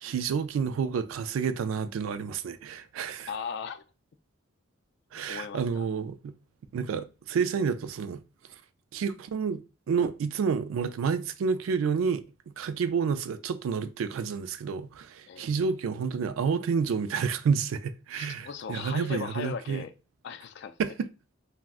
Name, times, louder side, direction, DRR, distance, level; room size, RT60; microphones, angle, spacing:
voice 1, 0.0-3.3 5.1-6.3 6.7-8.2 8.9-9.6 9.9-12.2 12.6-19.8 20.8-21.1, right 6 dB, 85° right, 0.3 m, -29 dB
voice 2, 3.3-3.8 5.3-5.9 15.3-15.5 18.1-19.9 20.2-20.8, left 6 dB, 60° left, 0.3 m, -37 dB
2.4 x 2.1 x 3.5 m
head